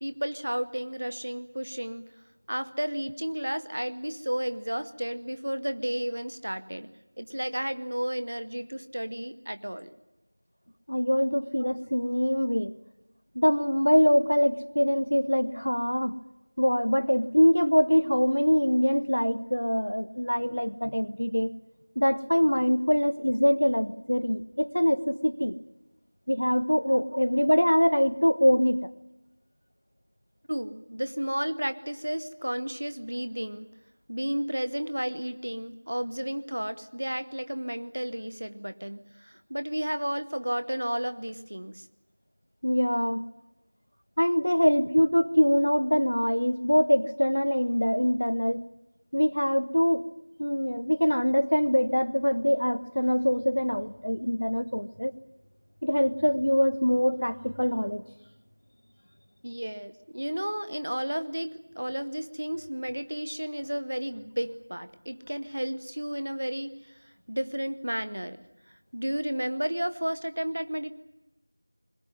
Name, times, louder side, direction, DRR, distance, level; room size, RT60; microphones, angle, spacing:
voice 1, 0.0-2.1 2.5-6.9 7.2-9.9 30.5-33.7 34.1-41.9 59.4-68.4 68.9-70.9, equal, 35° right, 11 dB, 0.9 m, -32 dB
voice 2, 10.9-12.7 13.3-16.2 16.6-21.5 22.0-25.6 26.3-28.9 42.6-43.2 44.2-48.6 49.1-50.0 50.4-55.1 55.8-58.0, equal, 75° left, 13 dB, 1.2 m, -24 dB
21.0 x 18.0 x 9.5 m, 0.95 s
figure-of-eight pair, 180°, 0 cm